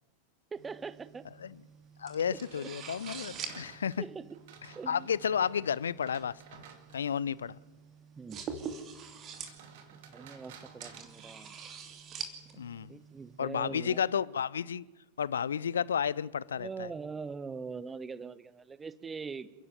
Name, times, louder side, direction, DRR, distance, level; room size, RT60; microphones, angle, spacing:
voice 1, 0.5-1.3 2.3-2.7 4.0-4.4 4.7-5.1 8.2-8.5 9.9-11.6 12.5-14.0 16.6-19.5, right 5 dB, 15° right, 0.9 m, -42 dB
sound 1, 0.5-13.4, right 6 dB, 30° right, 2.7 m, -46 dB
voice 2, 2.0-4.0 4.9-6.6 6.9-7.6 12.6-12.9 13.4-14.8 15.2-16.9, left 7 dB, 70° left, 0.5 m, -32 dB
sound 2, 2.2-7.3 9.2-11.9, right 6 dB, 50° right, 2.7 m, -54 dB
29.5 x 11.0 x 8.1 m
figure-of-eight pair, 90°, 0 cm